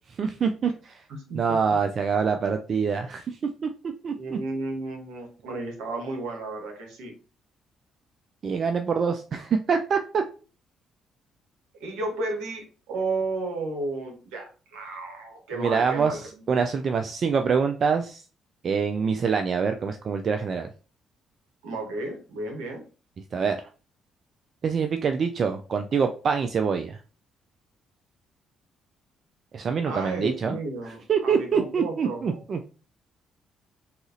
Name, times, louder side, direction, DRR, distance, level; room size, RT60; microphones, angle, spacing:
voice 1, 0.2-1.0 1.3-3.7 4.0-4.4 8.4-10.2 15.6-18.2 18.6-20.7 23.3-23.7 24.6-27.0 29.5-30.6 31.1-32.6, right 6 dB, 55° right, 6 dB, 0.3 m, -25 dB
voice 2, 1.1-1.8 4.2-7.1 11.7-16.5 21.6-22.8 29.8-32.4, right 2 dB, 80° right, 2 dB, 1.0 m, -33 dB
4.0 x 2.4 x 2.6 m, 0.36 s
supercardioid pair, 60°, 0 cm